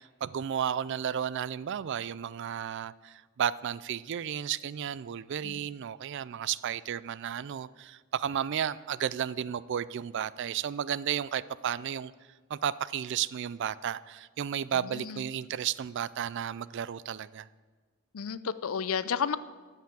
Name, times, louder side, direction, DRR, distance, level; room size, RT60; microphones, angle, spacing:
voice 1, 0.0-12.1 12.5-17.5, right 9 dB, 55° right, 0.3 m, -33 dB
voice 2, 18.1-19.4, left 7 dB, 65° left, 0.5 m, -31 dB
13.0 x 5.8 x 7.6 m
head